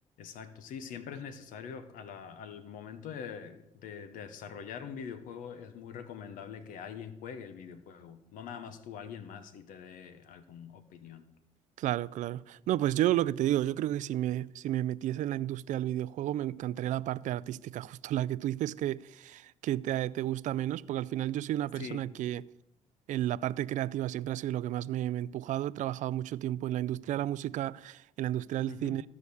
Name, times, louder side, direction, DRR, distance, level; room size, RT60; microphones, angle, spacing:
voice 1, 0.2-11.3 21.8-22.1 28.7-29.0, left 7 dB, 80° left, 0.9 m, -44 dB
voice 2, 11.8-22.4 23.1-29.0, right 13 dB, 65° right, 0.4 m, -32 dB
14.0 x 4.8 x 6.9 m
cardioid pair, 85°, 14 cm